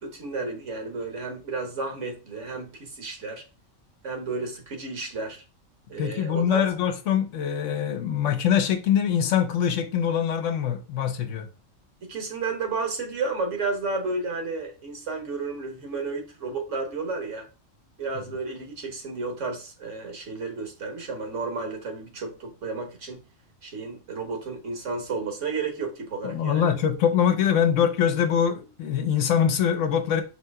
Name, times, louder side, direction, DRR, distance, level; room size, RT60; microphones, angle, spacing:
voice 1, 0.0-3.4 4.0-5.4 5.9-6.6 12.0-17.4 18.0-23.2 23.6-26.7, right 3 dB, 65° right, 1.4 m, -32 dB
voice 2, 6.0-11.5 26.2-30.2, left 8 dB, 70° left, 1.0 m, -23 dB
4.3 x 2.8 x 3.4 m
omnidirectional pair, 1.3 m